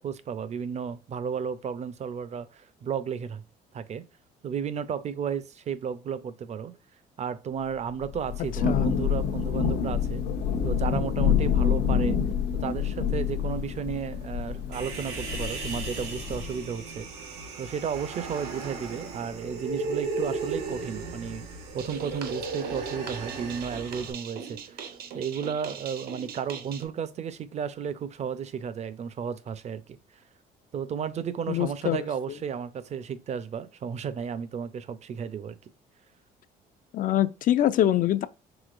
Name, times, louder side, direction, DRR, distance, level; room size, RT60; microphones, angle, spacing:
voice 1, 0.0-3.4 3.7-4.0 4.4-6.8 7.2-10.2 10.6-12.2 12.5-17.1 17.6-21.4 21.7-24.9 25.1-30.0 30.7-35.6, right 7 dB, 40° right, 0.5 m, -33 dB
Thunder / Rain, 8.0-16.6, left 7 dB, 80° left, 0.8 m, -27 dB
Human voice, 14.7-24.1, right 3 dB, 85° right, 1.3 m, -35 dB
sound 1, 21.8-26.9, right 7 dB, 65° right, 0.9 m, -41 dB
voice 2, 31.5-32.0 36.9-38.3, left 12 dB, 55° left, 0.4 m, -24 dB
4.9 x 3.6 x 2.5 m
cardioid pair, 110°, 17 cm